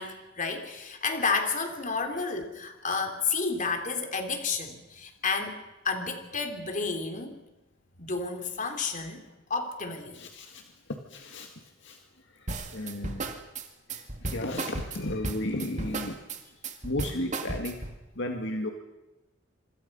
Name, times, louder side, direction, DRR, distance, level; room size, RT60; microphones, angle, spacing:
voice 1, 0.0-5.6 5.8-7.4 8.0-9.2 9.5-10.2, left 4 dB, 40° left, 5 dB, 3.4 m, -31 dB
voice 2, 10.1-10.6 11.1-11.5 11.8-12.0 12.3-13.3 13.9-16.2 16.8-17.8 18.2-18.7, left 1 dB, 65° left, 4 dB, 1.9 m, -34 dB
sound 1, 12.5-18.0, right 2 dB, 40° right, 2.3 m, -34 dB
27.0 x 26.0 x 5.5 m, 0.99 s
head